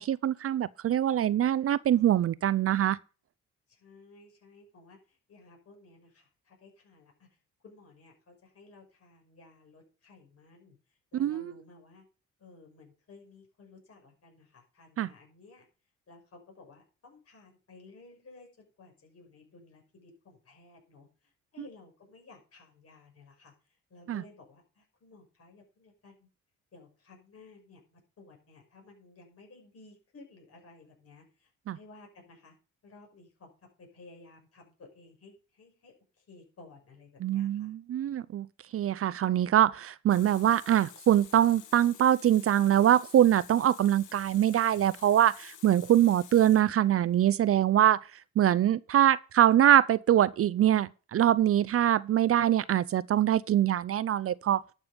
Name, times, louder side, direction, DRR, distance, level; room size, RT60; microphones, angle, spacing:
voice 1, 0.0-3.0 11.2-11.4 15.0-15.1 24.1-24.2 31.7-31.8 37.2-38.5 38.7-48.0 48.4-54.6, right 11 dB, 50° right, 0.5 m, -24 dB
voice 2, 3.7-7.3 7.6-12.1 12.4-15.7 16.1-18.5 18.8-26.3 26.7-32.6 32.8-37.7, left 3 dB, 50° left, 6.0 m, -55 dB
Water tap faucet, 40.1-47.1, left 9 dB, 85° left, 1.7 m, -51 dB
11.5 x 6.9 x 5.2 m
cardioid pair, 90°, 30 cm